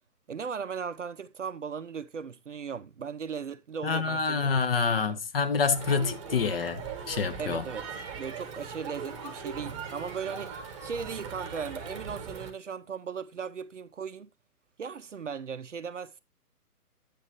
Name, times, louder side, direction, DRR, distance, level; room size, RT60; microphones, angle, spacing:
voice 1, 0.3-4.5 4.8-5.2 7.4-7.8 8.1-14.3 14.8-16.2, right 6 dB, 50° right, 0.7 m, -37 dB
voice 2, 3.8-7.7, left 5 dB, 40° left, 1.2 m, -27 dB
Crowd, 5.7-12.5, right 5 dB, 20° right, 1.1 m, -40 dB
8.5 x 8.4 x 2.9 m
figure-of-eight pair, 135°, 47 cm